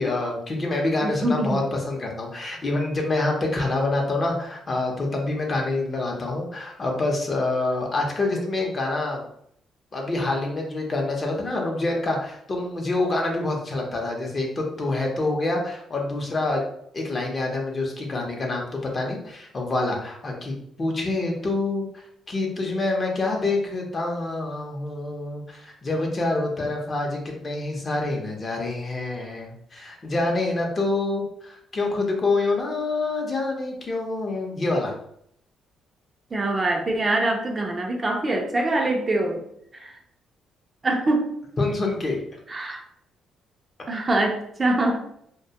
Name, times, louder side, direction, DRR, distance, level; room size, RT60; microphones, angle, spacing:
voice 1, 0.0-9.2 9.9-16.6 16.9-21.9 22.3-34.9 41.6-42.2, left 2 dB, 35° left, 0 dB, 0.6 m, -26 dB
voice 2, 1.0-1.6 36.3-39.4 39.7-40.0 40.8-41.3 42.5-42.8 43.9-45.0, right 2 dB, 30° right, 2 dB, 0.4 m, -24 dB
2.2 x 2.2 x 2.7 m, 0.70 s
cardioid pair, 90°, 0 cm